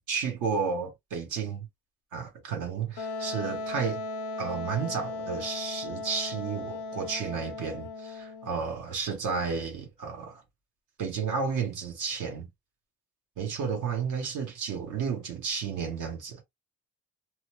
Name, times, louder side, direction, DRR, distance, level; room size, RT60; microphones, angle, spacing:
voice 1, 0.0-1.7 2.1-4.0 4.4-10.4 11.0-12.5 13.4-16.4, right 6 dB, 85° right, 1.1 m, -32 dB
Wind instrument woodwind instrument, 3.0-8.5, left 3 dB, 85° left, 0.5 m, -36 dB
3.0 x 2.1 x 3.0 m
cardioid pair, 90°, 30 cm